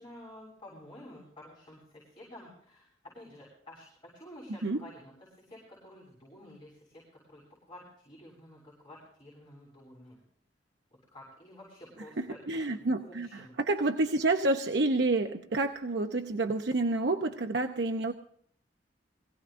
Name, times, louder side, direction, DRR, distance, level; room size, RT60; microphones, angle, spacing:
voice 1, 0.0-7.0 7.3-10.2 11.1-13.5, left 1 dB, 30° left, -5 dB, 7.1 m, -51 dB
voice 2, 12.2-18.1, right 2 dB, 75° right, 5 dB, 0.8 m, -29 dB
22.5 x 17.0 x 2.6 m, 0.64 s
head